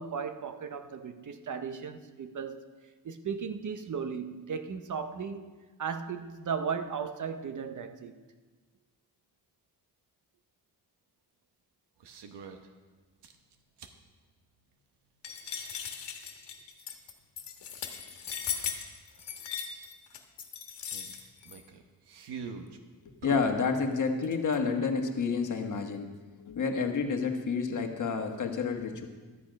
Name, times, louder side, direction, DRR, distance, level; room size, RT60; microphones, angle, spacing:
voice 1, 0.0-2.6 3.0-5.4 5.8-8.2, right 6 dB, 50° right, 0.8 m, -36 dB
sound 1, 12.0-12.7 13.2-14.0 15.4-15.5 18.3-18.4 18.6-18.7 19.2-19.3 20.9-22.8 23.2-24.6, right 5 dB, 80° right, 1.1 m, -44 dB
sound 2, 15.2-21.6, left 7 dB, 80° left, 1.5 m, -38 dB
voice 2, 23.2-26.1 26.4-29.1, left 5 dB, 45° left, 1.4 m, -29 dB
12.5 x 8.6 x 5.2 m
cardioid pair, 115°, 41 cm